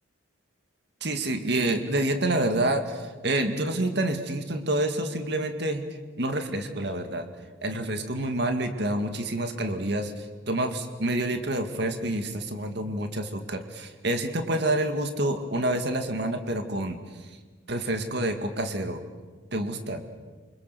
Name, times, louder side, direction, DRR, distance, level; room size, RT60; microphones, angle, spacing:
voice 1, 1.0-5.9 6.2-7.3 7.6-17.0 17.7-19.0 19.5-20.0, right 1 dB, 60° right, 6 dB, 2.2 m, -28 dB
28.0 x 26.0 x 7.0 m, 1.3 s
head